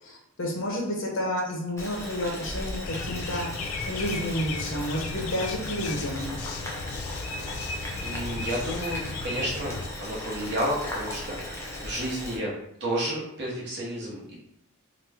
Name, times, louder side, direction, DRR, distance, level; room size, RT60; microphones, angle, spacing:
voice 1, 0.0-3.5 3.9-6.3, equal, 60° left, -1 dB, 0.7 m, -30 dB
Boiling, 1.8-12.4, left 1 dB, 10° left, 0.6 m, -37 dB
sound 1, 2.9-9.9, left 4 dB, 75° left, 0.3 m, -35 dB
voice 2, 8.0-12.5 12.8-14.3, right 1 dB, 50° right, -4 dB, 0.9 m, -31 dB
3.0 x 2.1 x 3.4 m, 0.80 s
head